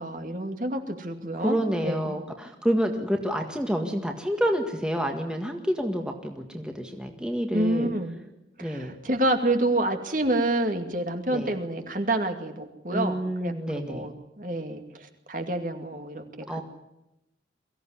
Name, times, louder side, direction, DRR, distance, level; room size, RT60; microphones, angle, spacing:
voice 1, 0.0-2.2 7.5-8.2 8.6-16.6, right 1 dB, 45° right, 6 dB, 2.4 m, -28 dB
voice 2, 1.3-7.9 8.6-8.9 11.3-11.6 12.9-14.1 16.5-16.6, equal, 5° right, 3 dB, 1.8 m, -28 dB
23.0 x 16.0 x 10.0 m, 0.89 s
head